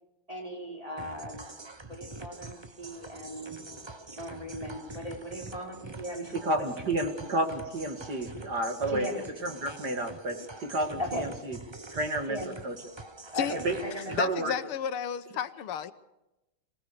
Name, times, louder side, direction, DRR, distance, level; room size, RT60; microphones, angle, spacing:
voice 1, 0.3-1.5 1.9-3.6 4.1-6.6 8.9-9.2 11.0-11.2 12.3-12.5 13.3-14.2 14.4-14.7, equal, 15° right, 4.4 m, -38 dB
sound 1, 1.0-14.2, right 2 dB, 35° right, 0.4 m, -45 dB
voice 2, 6.4-9.1 9.4-11.6 11.9-12.4 12.6-12.7 13.5-13.8 14.1-14.5, right 1 dB, 50° right, 2.5 m, -31 dB
voice 3, 14.2-15.9, left 9 dB, 85° left, 1.9 m, -32 dB
25.0 x 18.5 x 6.7 m
omnidirectional pair, 2.4 m